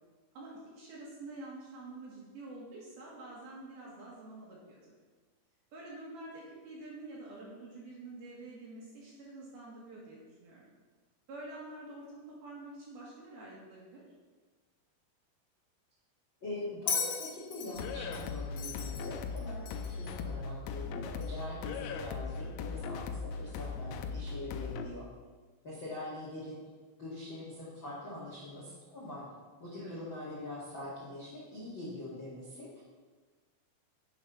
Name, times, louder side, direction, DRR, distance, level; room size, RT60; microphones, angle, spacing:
voice 1, 0.3-4.8 5.7-10.7 11.3-14.0 29.8-29.9, right 2 dB, 60° right, -5 dB, 3.2 m, -47 dB
voice 2, 16.4-25.1 25.6-26.6 27.0-29.2 29.6-32.8, left 2 dB, 45° left, -7 dB, 1.6 m, -43 dB
Bell, 16.9-20.1 21.2-21.3, left 6 dB, 65° left, 2.8 m, -37 dB
sound 1, 17.8-24.9, left 5 dB, 90° left, 3.3 m, -39 dB
8.3 x 7.5 x 5.7 m, 1.3 s
omnidirectional pair, 5.9 m